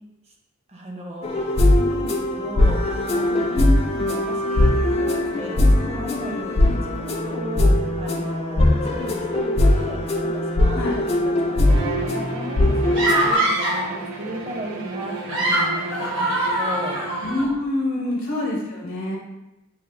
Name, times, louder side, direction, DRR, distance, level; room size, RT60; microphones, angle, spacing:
voice 1, 0.7-1.4 1.8-3.5 4.1-17.0 18.0-18.1, equal, 30° right, 0 dB, 0.6 m, -35 dB
sound 1, 1.2-13.3, left 1 dB, 30° left, 0.3 m, -20 dB
voice 2, 3.5-4.0 10.7-11.0 17.2-19.2, left 1 dB, 70° left, -3 dB, 0.8 m, -25 dB
Bowed string instrument, 11.6-17.4, right 3 dB, 90° right, 0.5 m, -34 dB
sound 2, 12.9-13.9 15.1-17.5, right 1 dB, 65° right, 1.1 m, -23 dB
5.6 x 2.4 x 2.5 m, 0.94 s
head